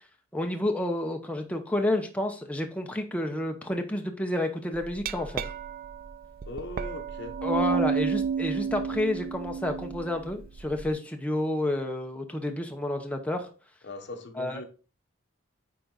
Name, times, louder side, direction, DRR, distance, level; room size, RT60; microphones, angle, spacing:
voice 1, 0.3-5.5 7.4-13.5 14.4-14.6, left 1 dB, 5° left, 0.7 m, -30 dB
Glass, 4.8-10.9, right 6 dB, 45° right, 0.3 m, -31 dB
voice 2, 6.5-7.4 13.8-14.6, left 2 dB, 60° left, 1.1 m, -39 dB
9.4 x 3.9 x 3.9 m
head